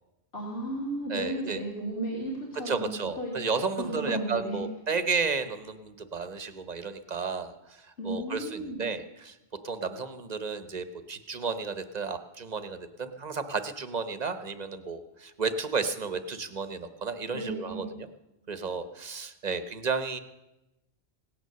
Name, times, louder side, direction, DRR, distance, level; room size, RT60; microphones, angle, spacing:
voice 1, 0.3-3.3 3.8-4.6 8.0-8.8 17.3-17.9, right 1 dB, 70° left, -5 dB, 3.0 m, -34 dB
voice 2, 1.1-1.6 2.6-9.4 9.6-18.1 18.5-20.2, right 4 dB, 40° right, 10 dB, 0.9 m, -33 dB
17.0 x 9.3 x 6.7 m, 0.97 s
omnidirectional pair, 1.1 m